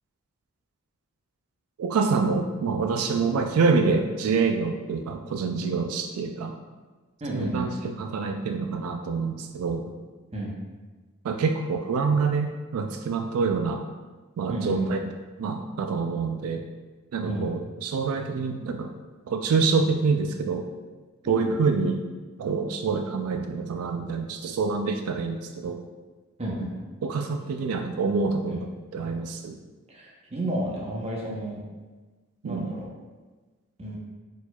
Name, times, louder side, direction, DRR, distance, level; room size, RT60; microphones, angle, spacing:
voice 1, 1.8-6.6 7.3-9.9 11.2-13.9 14.4-15.0 15.4-16.6 17.1-18.9 19.3-20.7 21.2-22.0 22.4-25.8 27.0-28.7 28.9-29.6 32.4-32.7, right 4 dB, 85° right, 5 dB, 0.3 m, -26 dB
voice 2, 7.2-7.8 10.3-10.5 14.5-15.0 17.2-17.5 21.2-21.6 26.4-26.8 28.5-28.6 29.9-31.6 32.4-32.9 33.8-34.0, right 1 dB, 30° right, -3 dB, 0.8 m, -31 dB
4.4 x 4.3 x 2.3 m, 1.3 s
head